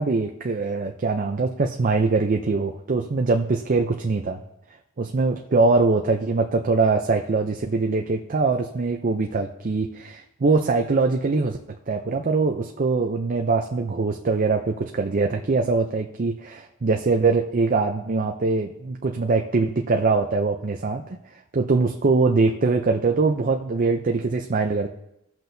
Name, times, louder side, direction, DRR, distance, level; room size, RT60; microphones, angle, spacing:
voice 1, 0.0-4.4 5.0-11.6 11.9-21.0 21.5-24.9, right 3 dB, 40° right, 3 dB, 0.5 m, -22 dB
17.5 x 6.0 x 2.7 m, 0.82 s
head